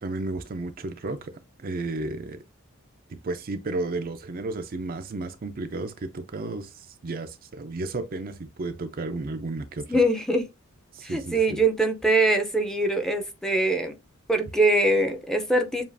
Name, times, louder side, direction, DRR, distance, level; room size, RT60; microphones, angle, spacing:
voice 1, 0.0-2.4 3.1-6.7 7.0-10.0 10.9-11.6, right 2 dB, 45° right, 0.5 m, -33 dB
voice 2, 9.9-10.4 11.0-13.9 14.3-15.8, right 2 dB, 5° left, 0.6 m, -23 dB
7.2 x 2.4 x 2.6 m
head